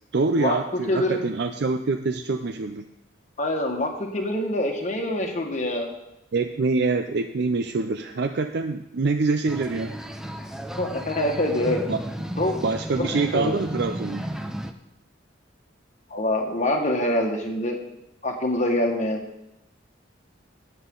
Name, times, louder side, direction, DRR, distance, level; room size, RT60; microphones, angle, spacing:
voice 1, 0.1-2.9 6.3-9.9 11.9-12.0 12.6-14.3, right 3 dB, 55° right, 8 dB, 0.5 m, -25 dB
voice 2, 0.9-1.3 3.4-5.9 10.8-11.8 12.4-12.5 13.0-13.5 16.1-17.8 18.2-19.2, left 1 dB, 35° left, 2 dB, 1.7 m, -25 dB
sound 1, 9.5-14.7, equal, 5° right, 0.6 m, -33 dB
18.0 x 7.6 x 3.9 m, 0.92 s
head